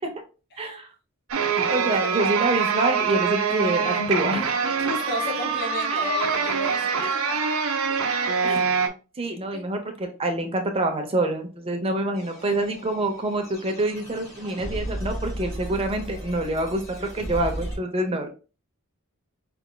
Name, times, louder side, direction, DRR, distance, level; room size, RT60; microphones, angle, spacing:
voice 1, 0.6-0.9 1.7-4.6 5.9-6.0 7.0-7.1 8.4-8.7 9.2-18.3, right 2 dB, 25° right, 4 dB, 0.6 m, -26 dB
sound 1, 1.3-8.9, right 5 dB, 70° right, 0.6 m, -24 dB
voice 2, 1.8-2.2 4.8-7.4 7.9-8.0 9.5-9.6, equal, 50° left, -1 dB, 1.8 m, -33 dB
sound 2, 12.1-17.8, right 1 dB, 30° left, 2.4 m, -35 dB
4.9 x 3.4 x 2.2 m, 0.33 s
head